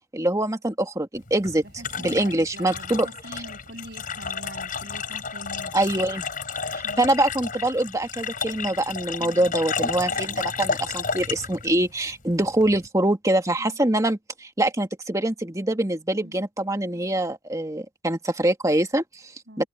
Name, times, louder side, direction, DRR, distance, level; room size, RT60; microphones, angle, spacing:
voice 1, 0.1-1.6 2.0-3.1 3.3-3.4 5.7-6.2 6.7-19.3 19.6-19.7, right 1 dB, 15° right, 1.8 m, -24 dB
sound 1, 1.2-12.9, left 5 dB, 45° left, 4.6 m, -32 dB
voice 2, 1.6-5.9 6.8-7.0 9.2-9.5 10.1-10.5 13.6-13.8 16.2-16.4 19.5-19.7, right 1 dB, 55° right, 7.0 m, -43 dB
head